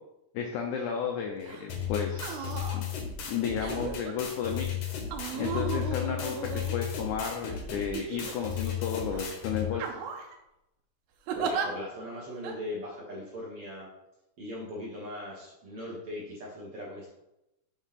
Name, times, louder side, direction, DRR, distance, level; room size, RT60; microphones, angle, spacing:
voice 1, 0.3-2.9 3.3-4.8 5.4-10.0, left 7 dB, 80° left, 2 dB, 1.7 m, -33 dB
sound 1, 1.4-1.6 2.1-2.8 3.6-4.1 5.1-7.2 7.9-8.7 9.1-9.3 9.7-10.3 11.3-11.7 12.4-12.6, right 6 dB, 90° right, 2.7 m, -35 dB
sound 2, 1.7-9.7, left 8 dB, 65° left, 1.6 m, -35 dB
voice 2, 11.3-13.9 14.4-17.1, left 1 dB, 55° right, -5 dB, 1.8 m, -39 dB
7.0 x 3.6 x 5.7 m, 0.88 s
omnidirectional pair, 4.4 m